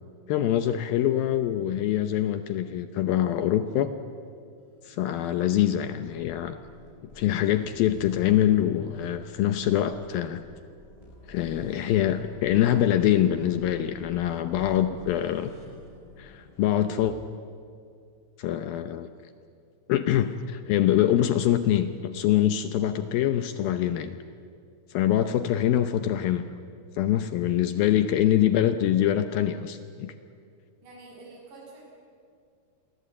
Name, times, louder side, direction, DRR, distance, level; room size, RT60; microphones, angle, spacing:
voice 1, 0.3-3.9 4.8-6.6 7.1-10.4 11.3-15.5 16.2-17.2 18.4-19.1 19.9-24.2 24.9-26.4 26.9-30.1, left 11 dB, 75° left, 10 dB, 2.3 m, -24 dB
sound 1, 4.6-17.2, left 1 dB, 15° left, 5.5 m, -49 dB
voice 2, 30.8-31.8, right 3 dB, 90° right, -2 dB, 8.8 m, -48 dB
28.0 x 23.0 x 8.6 m, 2.3 s
omnidirectional pair, 5.0 m